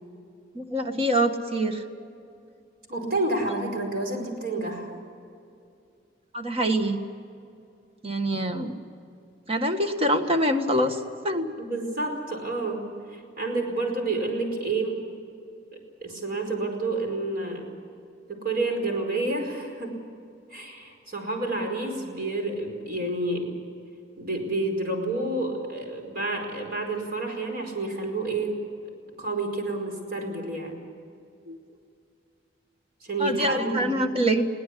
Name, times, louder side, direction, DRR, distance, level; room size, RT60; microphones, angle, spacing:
voice 1, 0.5-1.8 6.3-7.0 8.0-8.7 9.5-11.5 31.5-31.6 33.2-34.4, right 1 dB, 30° right, 6 dB, 1.5 m, -25 dB
voice 2, 2.9-4.9 11.6-15.0 15.7-17.7 18.3-20.0 20.5-23.5 24.2-28.6 29.2-30.8 33.0-33.9, right 2 dB, 55° right, 2 dB, 4.9 m, -29 dB
22.0 x 17.5 x 8.5 m, 2.5 s
head